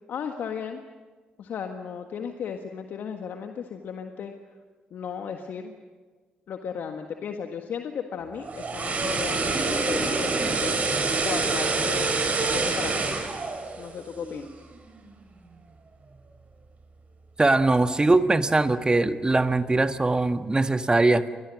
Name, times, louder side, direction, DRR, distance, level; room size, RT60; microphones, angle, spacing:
voice 1, 0.1-0.8 1.4-4.3 4.9-5.7 6.5-10.8 11.2-13.1 13.8-14.5, left 7 dB, 65° left, 5 dB, 1.6 m, -35 dB
sound 1, 8.3-14.5 14.9-15.1, right 3 dB, 45° right, 5.4 m, -26 dB
voice 2, 17.4-21.3, right 2 dB, 25° right, 9 dB, 1.6 m, -21 dB
30.0 x 23.5 x 6.4 m, 1.5 s
hypercardioid pair, 45°, 4 cm